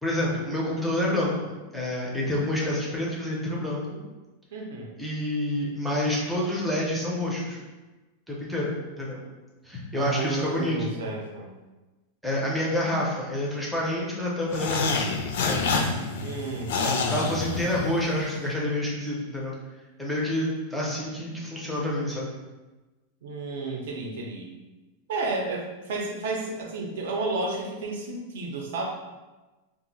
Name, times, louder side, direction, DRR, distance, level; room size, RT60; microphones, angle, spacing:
voice 1, 0.0-4.0 5.0-7.6 8.3-9.2 9.6-10.8 12.2-15.7 17.1-19.5 20.0-22.3, left 1 dB, ahead, -5 dB, 0.5 m, -28 dB
voice 2, 4.5-4.9 9.9-11.5 16.2-17.3 23.2-24.5 25.1-28.8, right 3 dB, 65° right, 0 dB, 0.5 m, -32 dB
sound 1, 14.5-18.2, left 4 dB, 60° left, 0.3 m, -28 dB
2.4 x 2.0 x 3.8 m, 1.2 s
supercardioid pair, 180°, 0 cm